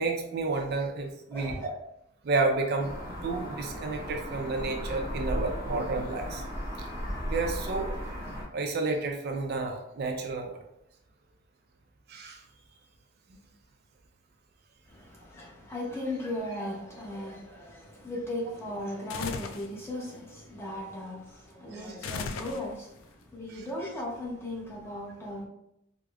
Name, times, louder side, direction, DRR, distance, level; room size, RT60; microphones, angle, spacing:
voice 1, 0.0-1.7 2.2-2.9 3.2-6.4 6.8-6.9 7.2-8.0 8.5-10.6 12.1-12.4 21.7-21.9 23.5-23.7, right 3 dB, 50° right, 0.4 m, -31 dB
voice 2, 1.3-1.7 14.9-25.4, left 1 dB, 10° left, 0.7 m, -37 dB
sound 1, 2.8-8.4, equal, 40° left, 1.4 m, -36 dB
sound 2, 19.1-19.7 22.0-23.0, left 5 dB, 75° left, 0.3 m, -36 dB
4.8 x 2.0 x 2.3 m
head